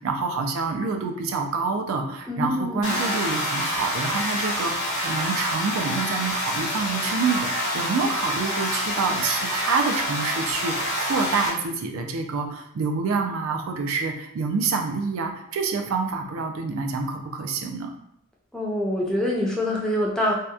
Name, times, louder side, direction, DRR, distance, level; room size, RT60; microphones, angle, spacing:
voice 1, 0.0-17.9, right 4 dB, 85° right, 3 dB, 0.4 m, -27 dB
voice 2, 2.3-3.0 18.5-20.3, left 1 dB, 5° left, -4 dB, 0.4 m, -25 dB
sound 1, 2.8-11.5, equal, 80° left, 0.8 m, -27 dB
2.8 x 2.1 x 2.3 m, 0.73 s
head